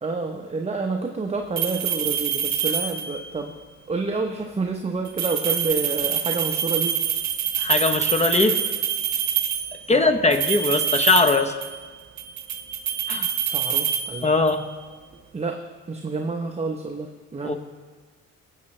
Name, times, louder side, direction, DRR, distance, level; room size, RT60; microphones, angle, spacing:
voice 1, 0.0-3.5 3.9-6.9 9.9-10.2 13.4-14.3 15.3-15.6 15.9-17.6, right 3 dB, 20° right, 3 dB, 0.8 m, -29 dB
sound 1, 1.6-3.3 5.1-9.8 10.3-11.9 12.2-14.6, right 9 dB, 65° right, 0.8 m, -26 dB
voice 2, 7.6-8.6 9.9-11.5 13.1-13.3 14.2-14.6 17.4-17.6, left 3 dB, 20° left, 8 dB, 0.8 m, -20 dB
18.0 x 7.6 x 3.2 m, 1.4 s
cardioid pair, 90°, 30 cm